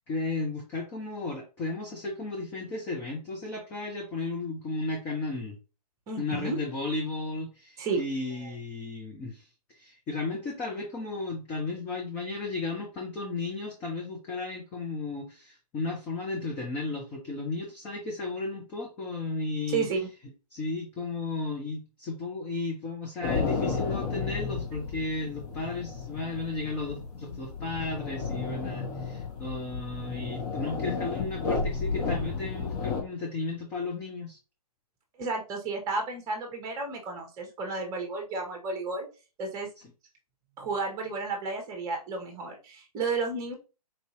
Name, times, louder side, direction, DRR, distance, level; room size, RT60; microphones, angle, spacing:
voice 1, 0.1-5.6 6.2-9.5 9.8-19.9 20.5-34.4, left 3 dB, 10° left, 0 dB, 0.3 m, -34 dB
voice 2, 6.1-6.6 7.8-8.0 19.7-20.0 35.2-39.1 39.4-39.7 40.6-43.5, right 4 dB, 20° right, 3 dB, 0.9 m, -32 dB
sound 1, 23.2-33.0, left 4 dB, 30° left, 0.8 m, -33 dB
4.0 x 2.7 x 2.7 m, 0.32 s
figure-of-eight pair, 130°, 20 cm